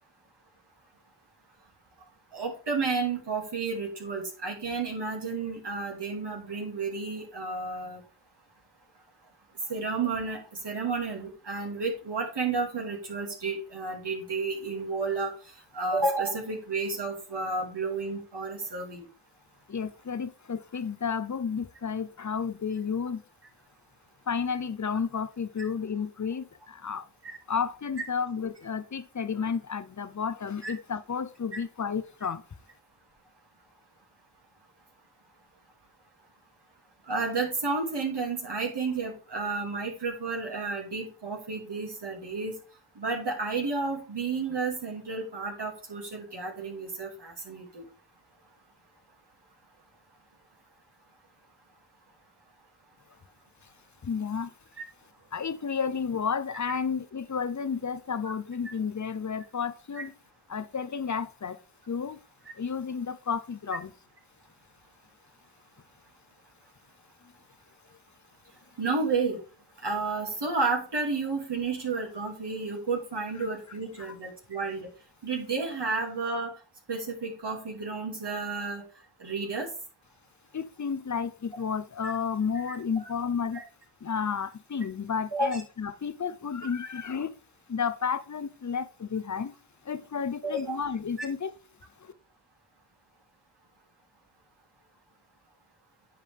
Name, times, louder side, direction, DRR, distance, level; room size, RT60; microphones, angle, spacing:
voice 1, 2.3-8.0 9.7-15.3 15.7-19.0 27.2-27.4 30.6-30.7 31.5-31.6 37.1-42.6 43.0-47.8 54.8-54.9 58.6-58.7 59.9-60.0 68.8-69.4 69.8-74.9 75.2-76.5 76.9-78.8 79.2-79.7 82.0-82.1 82.5-82.8 83.5-83.6 85.3-85.6 90.4-90.8, right 4 dB, 55° right, 2.7 m, -31 dB
voice 2, 19.7-23.2 24.3-27.1 27.5-32.4 54.0-54.5 55.3-60.1 60.5-61.6 61.9-62.2 62.6-63.9 74.0-74.1 80.5-83.6 84.0-87.3 87.7-89.5 89.8-91.5 92.0-92.1, left 6 dB, 35° left, 0.8 m, -32 dB
9.5 x 5.0 x 3.5 m
cardioid pair, 40°, 49 cm